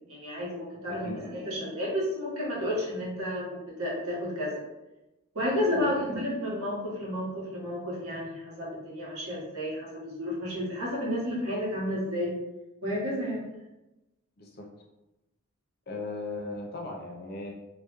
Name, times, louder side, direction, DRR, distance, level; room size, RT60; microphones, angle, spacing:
voice 1, 0.1-4.6 5.3-12.3 12.8-13.4, equal, 75° right, -5 dB, 0.9 m, -31 dB
voice 2, 5.7-6.2 13.2-13.3 14.4-14.7 15.9-17.5, left 2 dB, 45° left, 0 dB, 0.4 m, -38 dB
2.3 x 2.0 x 2.9 m, 0.99 s
head